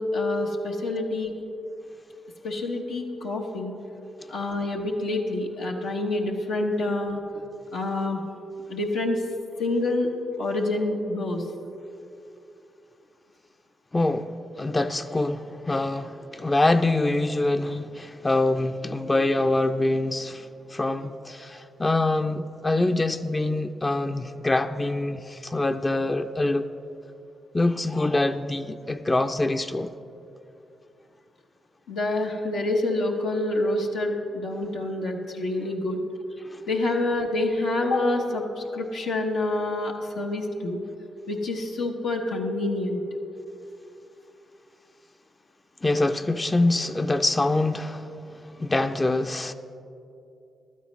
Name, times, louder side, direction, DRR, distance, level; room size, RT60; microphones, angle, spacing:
voice 1, 0.0-1.3 2.4-3.7 4.3-7.2 7.7-8.2 8.7-9.2 9.6-10.1 10.4-11.4 31.9-36.0 36.7-38.4 38.7-40.8 41.3-43.0, left 2 dB, 90° left, 0.9 m, -27 dB
voice 2, 13.9-26.7 27.5-29.9 36.5-36.6 45.8-48.1 48.6-49.5, left 2 dB, 25° left, 0.5 m, -25 dB
15.0 x 12.0 x 3.1 m
supercardioid pair, 50°, 0 cm